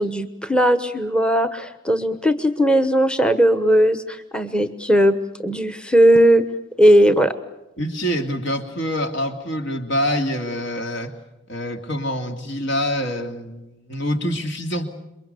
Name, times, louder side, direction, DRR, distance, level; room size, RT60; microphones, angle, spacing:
voice 1, 0.0-5.1 5.4-6.4 6.8-7.3, equal, 5° left, 10 dB, 1.0 m, -17 dB
voice 2, 7.8-11.1 11.5-14.9, equal, 55° left, 5 dB, 2.7 m, -25 dB
28.5 x 23.0 x 6.8 m, 0.96 s
head